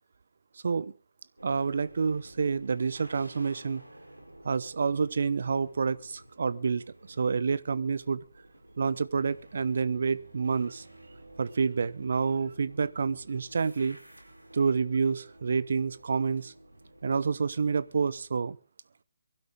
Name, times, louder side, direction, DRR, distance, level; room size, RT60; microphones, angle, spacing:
voice 1, 1.4-3.8 4.4-8.2 8.8-10.8 11.4-14.0 14.5-16.5 17.0-18.6, right 5 dB, 55° right, 0.9 m, -28 dB
sound 1, 1.4-18.3, right 1 dB, 85° right, 4.1 m, -52 dB
23.0 x 12.0 x 3.7 m
figure-of-eight pair, 145°, 0 cm